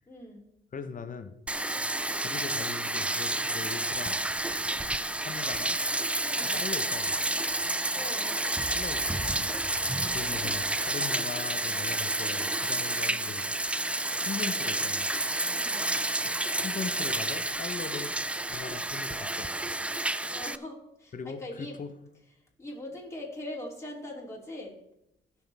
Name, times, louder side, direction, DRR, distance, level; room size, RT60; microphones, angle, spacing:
voice 1, 0.1-0.4 6.3-6.6 7.9-8.4 10.1-10.5 12.9-13.2 15.5-15.8 20.3-21.8 22.6-24.8, left 1 dB, 15° left, -3 dB, 3.3 m, -42 dB
voice 2, 0.7-1.4 2.2-4.2 5.2-5.8 6.5-7.2 8.7-9.6 9.9-13.5 14.1-15.2 16.2-18.1 18.5-19.6 21.1-21.9, left 5 dB, 40° left, 9 dB, 1.1 m, -40 dB
Bathtub (filling or washing), 1.5-20.6, right 2 dB, 5° right, 0.3 m, -30 dB
17.5 x 6.4 x 3.6 m, 0.81 s
cardioid pair, 90°, 20 cm